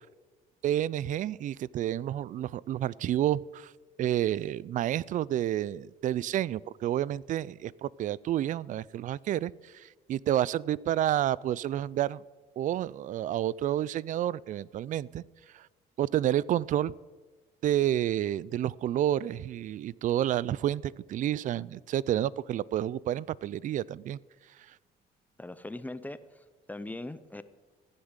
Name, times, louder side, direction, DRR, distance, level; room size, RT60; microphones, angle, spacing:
voice 1, 0.6-3.7 4.0-12.2 12.6-15.2 15.5-15.7 16.0-16.9 17.6-24.2, right 12 dB, 50° right, 23 dB, 0.4 m, -30 dB
voice 2, 25.4-27.4, left 2 dB, 10° left, 14 dB, 0.7 m, -41 dB
15.0 x 9.7 x 8.1 m, 1.3 s
cardioid pair, 110°, 17 cm